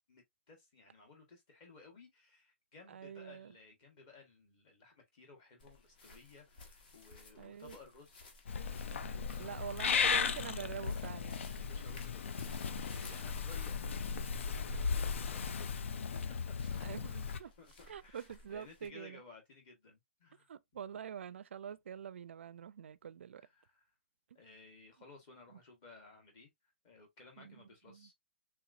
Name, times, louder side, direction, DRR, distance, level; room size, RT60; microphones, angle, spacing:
voice 1, 0.1-8.3 9.0-10.7 11.6-12.5 12.9-15.8 16.1-16.9 17.6-20.5 23.4-23.9 24.3-26.5 26.8-28.1, left 3 dB, 25° left, 1.2 m, -58 dB
voice 2, 2.9-3.5 7.4-7.8 9.4-11.5 12.4-12.5 13.1-13.2 16.8-17.5 17.9-19.2 20.5-23.4 27.4-28.1, right 8 dB, 65° right, 0.4 m, -46 dB
sound 1, 5.6-18.9, left 3 dB, 45° left, 1.1 m, -58 dB
Purr / Meow, 8.5-17.4, left 6 dB, 70° left, 0.4 m, -36 dB
3.4 x 2.9 x 2.4 m
hypercardioid pair, 170°, 7 cm